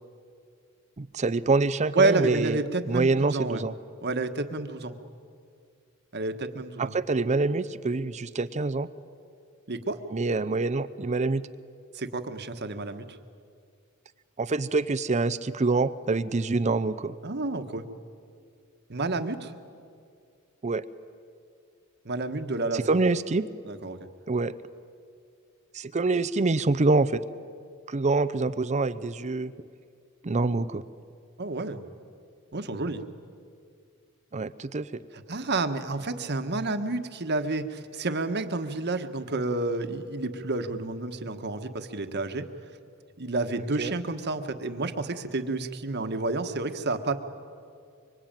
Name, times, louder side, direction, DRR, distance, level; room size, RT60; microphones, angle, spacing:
voice 1, 1.0-2.6 2.9-3.7 6.8-8.9 10.1-11.4 14.4-17.2 20.6-20.8 22.7-23.5 24.3-24.5 25.7-27.2 27.9-29.5 30.2-30.8 34.3-35.0 43.8-43.9, right 3 dB, 35° right, 14 dB, 0.6 m, -26 dB
voice 2, 1.9-3.6 4.0-4.9 6.1-6.9 9.7-10.0 11.9-13.2 17.2-17.9 18.9-19.5 22.0-22.9 23.6-24.0 31.4-31.8 32.5-33.0 35.3-42.5 43.2-47.1, right 2 dB, 50° right, 8 dB, 1.4 m, -30 dB
25.5 x 24.5 x 9.0 m, 2.3 s
head